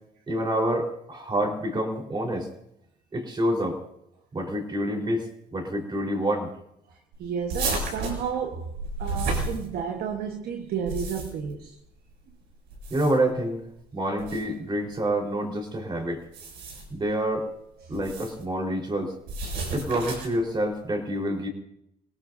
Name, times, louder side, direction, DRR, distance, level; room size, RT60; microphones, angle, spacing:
voice 1, 0.3-2.5 3.1-3.8 4.3-6.5 12.9-13.6 13.9-16.3 16.9-17.5 17.9-19.1 19.7-21.5, right 1 dB, 25° right, 4.2 m, -27 dB
voice 2, 6.9-8.7 9.0-11.7 17.8-18.0, right 7 dB, 65° right, 1.4 m, -32 dB
sound 1, 7.5-10.1 10.7-11.5 12.7-13.3 14.2-14.4 16.2-17.0 17.9-18.4 19.3-20.4, right 3 dB, 80° right, 7.1 m, -32 dB
29.0 x 18.0 x 2.7 m
cardioid pair, 110°, 17 cm